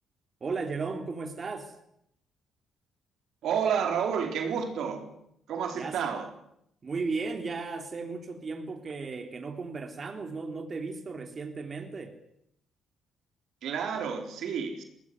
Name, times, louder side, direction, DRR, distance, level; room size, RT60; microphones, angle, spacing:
voice 1, 0.4-1.8 5.7-6.1 6.8-12.1, right 4 dB, 40° right, 3.5 m, -35 dB
voice 2, 3.4-5.1 5.5-6.3 13.6-14.8, right 7 dB, 75° right, 4.1 m, -30 dB
20.0 x 19.5 x 9.6 m
cardioid pair, 90°, 0 cm